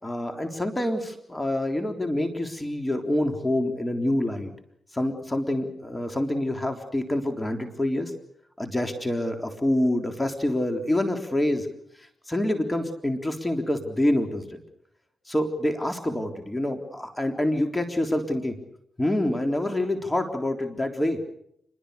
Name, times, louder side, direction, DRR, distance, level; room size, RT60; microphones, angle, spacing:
voice 1, 0.0-4.5 4.9-8.1 8.6-11.7 12.3-14.6 15.3-18.6 19.0-21.2, left 1 dB, 15° left, 5 dB, 3.7 m, -26 dB
27.5 x 22.0 x 6.9 m, 0.73 s
cardioid pair, 65°, 0 cm